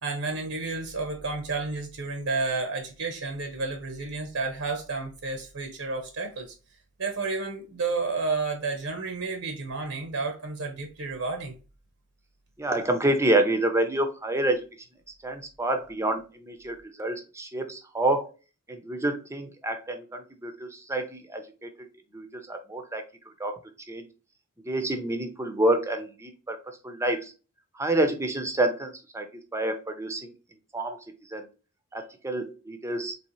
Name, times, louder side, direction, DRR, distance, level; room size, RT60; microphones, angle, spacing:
voice 1, 0.0-6.5 7.0-11.5, right 3 dB, 70° right, 5 dB, 0.8 m, -31 dB
voice 2, 12.6-14.6 15.2-18.3 18.7-21.7 22.1-23.0 23.4-23.6 23.9-24.1 24.7-26.6 26.8-27.3 27.8-29.3 29.5-30.3 30.7-31.0 31.3-31.4 31.9-33.1, right 1 dB, 15° right, 6 dB, 0.6 m, -28 dB
4.2 x 3.0 x 3.0 m, 0.33 s
head